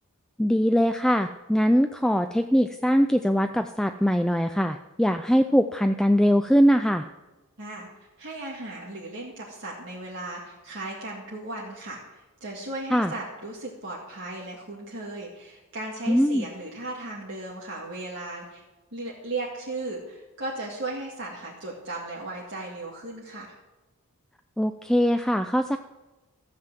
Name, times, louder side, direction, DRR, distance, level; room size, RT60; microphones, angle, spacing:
voice 1, 0.4-7.1 12.9-13.1 16.1-16.5 24.6-25.8, equal, 5° left, 7 dB, 0.3 m, -22 dB
voice 2, 7.6-7.9 8.2-18.6 18.9-23.5, right 2 dB, 55° right, -4 dB, 2.1 m, -36 dB
14.5 x 7.8 x 7.5 m, 1.1 s
head